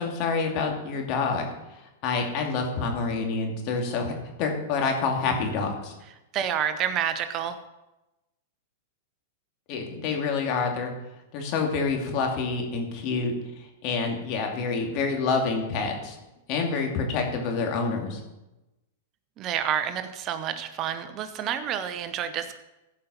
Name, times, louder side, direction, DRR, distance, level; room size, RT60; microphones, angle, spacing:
voice 1, 0.0-5.9 9.7-10.9 11.3-16.2 16.5-18.2, left 4 dB, 45° left, 2 dB, 2.5 m, -28 dB
voice 2, 6.3-7.5 19.4-22.6, right 9 dB, 35° right, 10 dB, 0.8 m, -29 dB
15.0 x 5.6 x 5.6 m, 0.99 s
hypercardioid pair, 120°, 0 cm